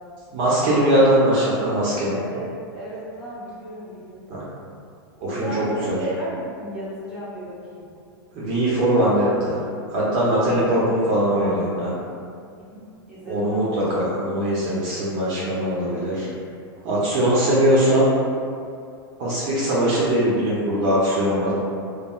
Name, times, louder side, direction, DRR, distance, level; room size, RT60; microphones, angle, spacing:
voice 1, 0.3-2.1 4.3-4.4 5.2-6.0 8.3-9.6 9.9-11.9 13.2-16.3 16.8-18.1 19.2-21.5, right 1 dB, 40° right, -7 dB, 0.5 m, -21 dB
voice 2, 2.1-4.3 5.3-7.9 10.4-11.6 12.6-12.8 13.1-13.7, right 1 dB, 5° right, -10 dB, 0.8 m, -34 dB
2.9 x 2.3 x 2.2 m, 2.4 s
supercardioid pair, 150°, 13 cm